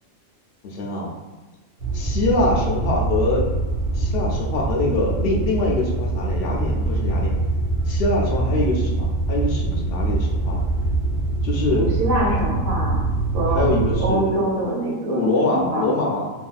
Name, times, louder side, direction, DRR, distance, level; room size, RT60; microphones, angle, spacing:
voice 1, 0.6-1.1 1.9-3.5 3.9-7.3 7.9-10.6 11.4-11.9 13.5-14.4 15.1-16.3, left 2 dB, 65° left, -2 dB, 0.6 m, -24 dB
sound 1, 1.8-14.1, right 2 dB, 50° right, 0.9 m, -24 dB
voice 2, 11.8-13.1 13.3-13.7 14.0-16.0, right 1 dB, 80° right, -5 dB, 1.2 m, -24 dB
2.8 x 2.6 x 2.4 m, 1.2 s
omnidirectional pair, 1.3 m